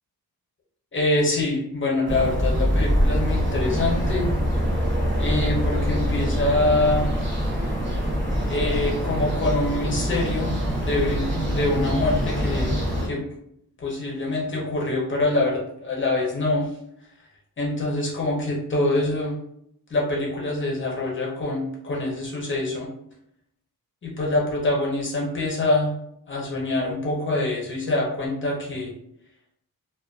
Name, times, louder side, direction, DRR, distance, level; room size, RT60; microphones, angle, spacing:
voice 1, 0.9-4.3 5.2-7.1 8.4-12.7 13.0-13.2 13.8-16.7 17.6-19.4 19.9-22.9 24.0-25.9 26.3-28.9, left 2 dB, 30° left, -3 dB, 0.7 m, -25 dB
sound 1, 2.1-13.1, equal, 30° right, 0.6 m, -24 dB
2.4 x 2.4 x 2.3 m, 0.73 s
wide cardioid pair, 175°, 37 cm